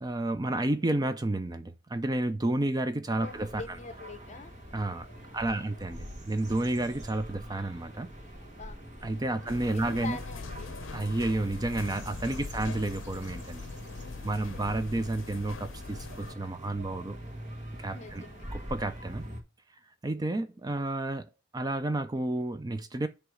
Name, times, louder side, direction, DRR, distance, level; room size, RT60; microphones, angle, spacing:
voice 1, 0.0-3.6 4.7-5.1 5.3-8.1 9.0-10.2 10.9-13.7 14.2-17.2 17.8-18.2 18.5-19.2 20.0-23.1, right 2 dB, 20° right, 0.4 m, -31 dB
voice 2, 3.1-4.5 5.3-5.7 8.4-8.8 9.3-10.7 13.9-14.6 17.9-18.5, left 4 dB, 40° left, 0.9 m, -45 dB
sound 1, 3.2-19.4, equal, 40° right, 1.5 m, -45 dB
sound 2, 9.5-16.3, left 4 dB, 75° left, 0.6 m, -42 dB
7.8 x 3.1 x 6.2 m
head